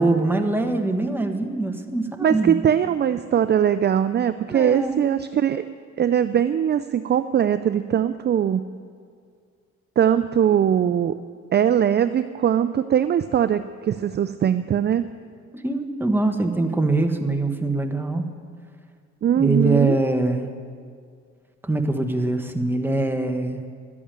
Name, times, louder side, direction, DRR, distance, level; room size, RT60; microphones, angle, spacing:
voice 1, 0.0-2.6 4.5-5.0 15.5-18.3 19.4-20.5 21.6-23.6, right 2 dB, 5° right, 5 dB, 1.2 m, -23 dB
voice 2, 2.2-5.6 6.0-8.6 10.0-11.2 11.5-15.1 19.2-20.0, right 9 dB, 35° right, 12 dB, 0.4 m, -21 dB
12.0 x 8.6 x 8.8 m, 2.1 s
cardioid pair, 90°, 30 cm